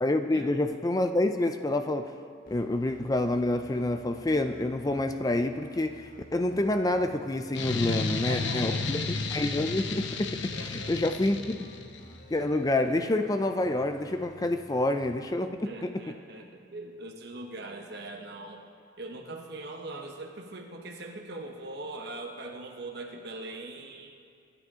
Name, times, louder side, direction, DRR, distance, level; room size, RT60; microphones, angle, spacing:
voice 1, 0.0-2.2 2.5-11.7 12.3-16.0, left 1 dB, 20° left, 8 dB, 0.4 m, -28 dB
sound 1, 2.5-15.2, left 1 dB, 45° left, 1.5 m, -52 dB
sound 2, 7.5-12.0, left 4 dB, 65° left, 0.9 m, -32 dB
voice 2, 7.8-9.0 10.5-10.9 15.6-18.6 19.0-24.1, right 2 dB, 55° right, 1 dB, 1.0 m, -41 dB
24.0 x 9.9 x 3.7 m, 2.3 s
head